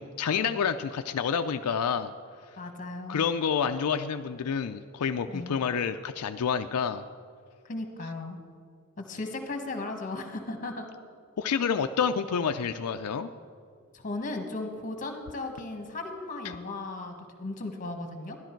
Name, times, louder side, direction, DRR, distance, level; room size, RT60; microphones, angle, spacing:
voice 1, 0.0-2.1 3.1-7.0 11.4-13.3 16.4-16.6, left 7 dB, 85° left, 8 dB, 0.4 m, -28 dB
voice 2, 2.6-3.3 5.3-5.5 7.6-8.4 9.0-10.9 13.9-18.4, left 2 dB, 35° left, 5 dB, 1.3 m, -36 dB
13.0 x 11.0 x 4.5 m, 2.2 s
head